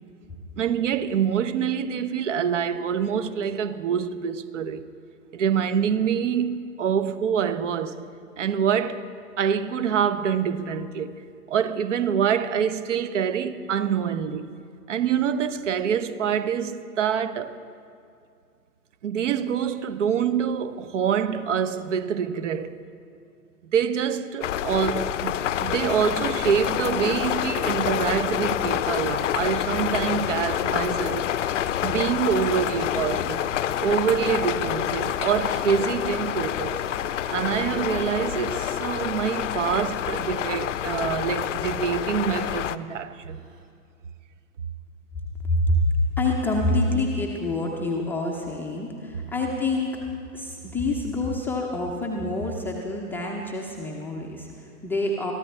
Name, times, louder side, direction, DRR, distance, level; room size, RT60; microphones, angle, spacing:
voice 1, 0.6-4.8 5.3-8.0 8.4-9.0 9.4-11.1 11.5-14.5 14.9-17.5 19.0-22.8 23.7-31.3 31.8-33.5 33.8-36.8 37.3-43.4, right 7 dB, 50° right, 0.9 m, -26 dB
sound 1, 24.4-42.8, left 10 dB, 55° left, 0.6 m, -27 dB
Crying sobbing, 35.5-36.1 36.8-37.1 37.4-39.1 39.7-39.8 40.1-41.1 41.6-41.8 43.1-43.7, right 8 dB, 30° right, 2.0 m, -52 dB
voice 2, 45.4-50.0 50.3-55.3, left 2 dB, 5° left, 0.5 m, -26 dB
22.5 x 14.0 x 3.3 m
figure-of-eight pair, 115°, 46 cm